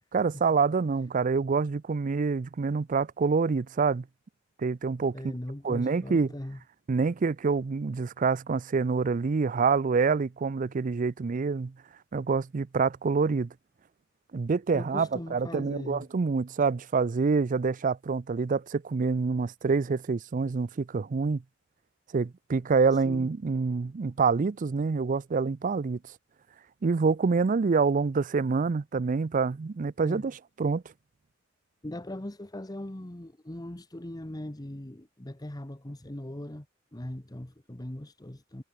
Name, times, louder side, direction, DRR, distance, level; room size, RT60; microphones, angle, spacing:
voice 1, 0.1-4.0 4.6-5.3 5.6-6.3 6.9-11.7 12.1-13.5 14.3-21.4 22.1-26.0 26.8-30.8, right 4 dB, 40° right, 0.4 m, -26 dB
voice 2, 5.1-6.6 14.7-16.1 22.9-23.3 30.0-30.2 31.8-36.7 36.9-38.6, left 1 dB, 20° left, 1.1 m, -40 dB
head